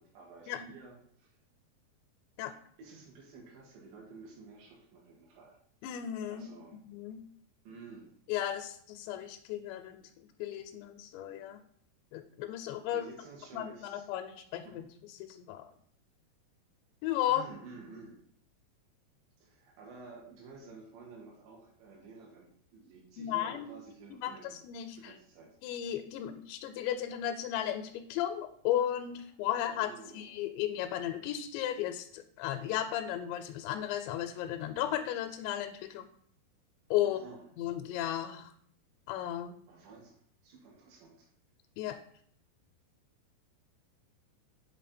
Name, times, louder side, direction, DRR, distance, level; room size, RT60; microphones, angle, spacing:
voice 1, 0.0-1.4 2.8-5.6 6.3-6.8 7.6-8.1 12.9-14.1 14.6-14.9 17.3-18.2 19.4-25.5 29.5-30.5 37.0-37.5 39.7-41.3, right 4 dB, 85° right, -1 dB, 3.9 m, -52 dB
voice 2, 5.8-6.5 6.8-7.2 8.3-10.0 10.4-11.6 12.1-13.1 13.5-14.9 15.2-15.7 17.0-17.4 23.2-23.7 24.1-25.1 25.6-29.9 30.1-36.0 36.9-37.2 37.6-38.5 39.1-39.6 41.8-42.0, left 11 dB, 90° left, 7 dB, 2.8 m, -34 dB
7.7 x 3.9 x 4.2 m, 0.63 s
omnidirectional pair, 4.9 m